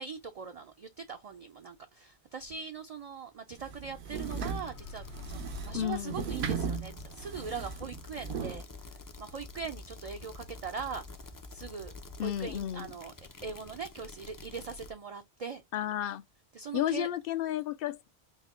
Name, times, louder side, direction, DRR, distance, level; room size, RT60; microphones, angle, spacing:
voice 1, 0.0-8.7 9.2-11.0 11.5-11.9 12.2-13.1 13.4-15.9 16.5-17.1, right 5 dB, 55° right, 0.4 m, -41 dB
sound 1, 3.6-8.6, right 6 dB, 80° right, 0.9 m, -37 dB
sound 2, 3.9-9.7, left 2 dB, 85° left, 1.4 m, -49 dB
sound 3, 4.1-14.9, left 3 dB, 35° left, 0.3 m, -48 dB
voice 2, 5.7-6.2 12.2-12.9 15.7-16.2 16.7-18.1, left 12 dB, 65° left, 0.7 m, -32 dB
4.2 x 2.1 x 3.5 m
omnidirectional pair, 1.1 m